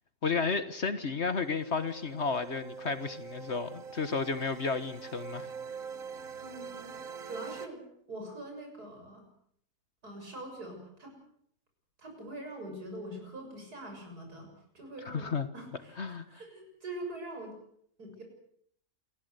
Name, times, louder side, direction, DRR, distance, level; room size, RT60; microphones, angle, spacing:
voice 1, 0.2-5.5 15.0-15.5 16.0-16.2, left 4 dB, 45° left, 11 dB, 1.6 m, -32 dB
sound 1, 1.3-7.7, right 6 dB, 60° right, 1.7 m, -44 dB
voice 2, 6.4-6.9 7.2-7.8 8.1-9.3 10.0-11.1 12.0-15.3 15.5-17.5 18.0-18.2, right 1 dB, 80° right, 3 dB, 7.6 m, -43 dB
28.0 x 15.5 x 8.2 m, 0.66 s
omnidirectional pair, 1.6 m